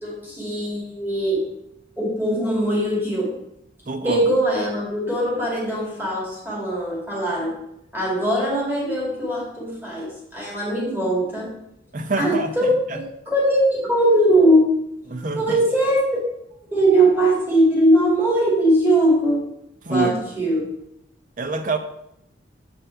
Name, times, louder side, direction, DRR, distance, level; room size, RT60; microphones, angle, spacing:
voice 1, 0.0-1.5 2.0-3.3 4.0-7.6 7.9-11.5 12.2-14.7 15.4-16.2 16.7-19.4 19.9-20.7, right 1 dB, 10° right, -4 dB, 2.2 m, -20 dB
voice 2, 3.9-4.2 11.9-13.0 15.1-15.6 19.8-20.2 21.4-21.8, right 3 dB, 40° right, 8 dB, 0.6 m, -26 dB
6.8 x 5.2 x 4.4 m, 0.80 s
head